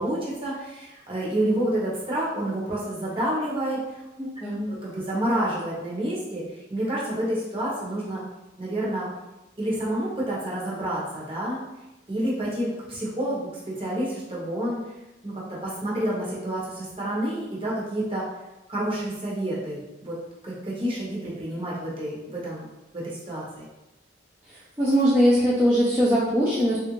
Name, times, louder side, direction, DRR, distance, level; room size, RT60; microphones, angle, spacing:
voice 1, 0.0-3.8 4.7-6.4 6.7-8.2 8.6-9.1 9.6-11.6 12.1-14.8 15.2-18.3 18.7-22.7 22.9-23.7, right 1 dB, 30° right, -6 dB, 0.9 m, -29 dB
voice 2, 4.2-4.7 24.8-26.8, equal, 10° right, -10 dB, 0.5 m, -21 dB
3.3 x 2.5 x 3.0 m, 1.0 s
head